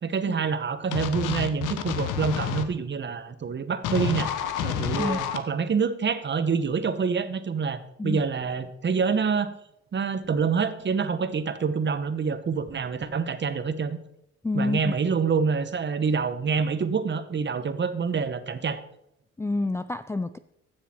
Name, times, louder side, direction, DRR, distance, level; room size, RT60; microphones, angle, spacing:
voice 1, 0.0-4.3 4.6-9.5 9.9-14.0 14.5-18.8, right 5 dB, 35° right, 12 dB, 1.0 m, -26 dB
sound 1, 0.9-2.7 3.8-5.4, left 10 dB, 85° left, 1.0 m, -29 dB
voice 2, 14.4-14.9 19.4-20.4, left 2 dB, 10° left, 11 dB, 0.3 m, -28 dB
15.0 x 6.7 x 4.4 m, 0.76 s
cardioid pair, 90°, 30 cm